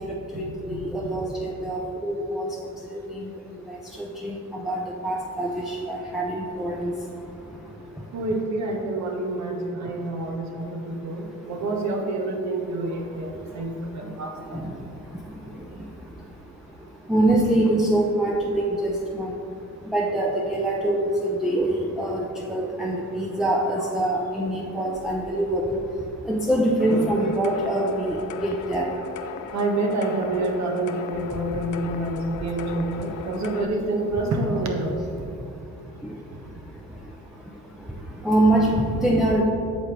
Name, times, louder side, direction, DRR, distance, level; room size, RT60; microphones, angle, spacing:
voice 1, 0.3-2.5 3.2-3.3 4.0-4.4 4.6-6.9 14.5-14.6 17.1-19.3 19.9-22.2 22.5-25.8 26.3-28.2 28.4-28.9 36.0-36.1 38.2-39.4, right 1 dB, ahead, -3 dB, 0.6 m, -24 dB
voice 2, 8.1-14.7 29.5-35.0, right 2 dB, 65° right, 1 dB, 1.2 m, -27 dB
sound 1, 26.8-33.7, left 7 dB, 75° left, 0.5 m, -38 dB
8.5 x 6.1 x 3.4 m, 2.8 s
cardioid pair, 90°, 30 cm